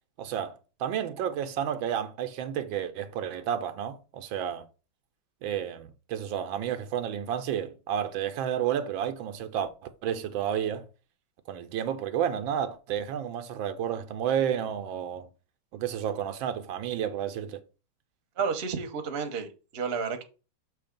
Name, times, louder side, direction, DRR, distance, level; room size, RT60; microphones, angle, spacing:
voice 1, 0.2-4.7 5.4-9.7 10.0-10.9 11.5-15.3 15.7-17.6, right 9 dB, 85° right, 1.4 m, -31 dB
voice 2, 18.4-20.2, right 5 dB, 40° right, 0.9 m, -31 dB
7.0 x 3.2 x 5.1 m
omnidirectional pair, 2.1 m